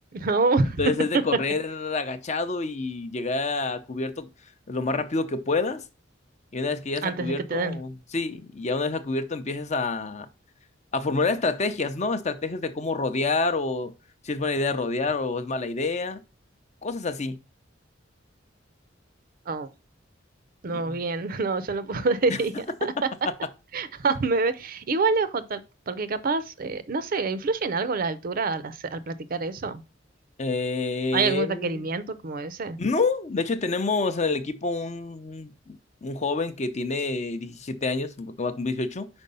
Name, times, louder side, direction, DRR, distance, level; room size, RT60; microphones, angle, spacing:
voice 1, 0.1-0.8 1.1-1.2 7.0-7.8 19.5-19.7 20.6-22.6 23.7-29.8 31.1-32.8, right 3 dB, 50° right, 0.5 m, -26 dB
voice 2, 0.8-4.3 4.7-5.8 6.5-10.3 10.9-13.9 14.2-16.2 16.8-17.4 20.7-21.0 22.3-22.4 30.4-31.8 32.8-39.1, left 3 dB, 40° left, 0.6 m, -28 dB
5.3 x 4.5 x 5.4 m
head